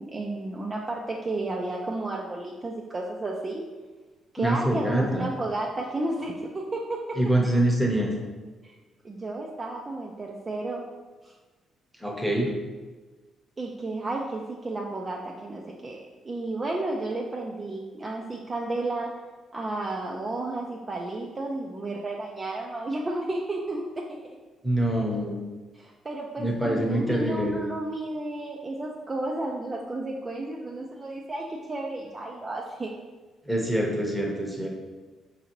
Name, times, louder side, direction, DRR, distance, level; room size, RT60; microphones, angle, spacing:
voice 1, 0.0-3.6 4.3-7.2 8.6-8.8 9.0-10.8 11.2-11.3 13.6-19.1 19.5-24.4 25.7-32.9, right 2 dB, 30° right, -1 dB, 0.4 m, -32 dB
voice 2, 4.4-5.3 7.2-8.1 12.0-12.5 24.6-25.4 26.4-27.5 33.5-34.7, right 1 dB, 5° right, 0 dB, 0.8 m, -25 dB
4.8 x 2.6 x 2.9 m, 1.3 s
cardioid pair, 90°, 0 cm